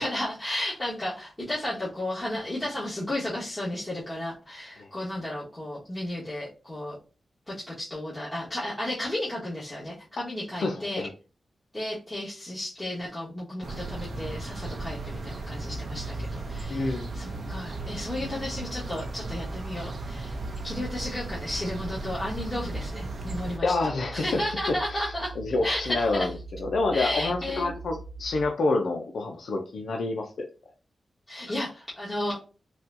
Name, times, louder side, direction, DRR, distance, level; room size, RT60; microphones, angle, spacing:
voice 1, 0.0-6.9 7.5-11.0 11.7-20.4 20.6-23.8 24.1-25.3 25.6-26.3 26.9-27.7 31.3-32.4, left 1 dB, 15° left, -8 dB, 1.3 m, -33 dB
voice 2, 10.6-11.1 16.7-17.1 17.4-17.5 23.6-24.4 24.9-26.3 26.6-30.5, left 3 dB, 80° left, 2 dB, 0.5 m, -28 dB
sound 1, 13.6-23.6, right 2 dB, 65° right, 0.7 m, -36 dB
sound 2, 15.7-28.5, right 3 dB, 50° left, 1.2 m, -42 dB
4.1 x 2.3 x 2.5 m, 0.34 s
cardioid pair, 75°, 0 cm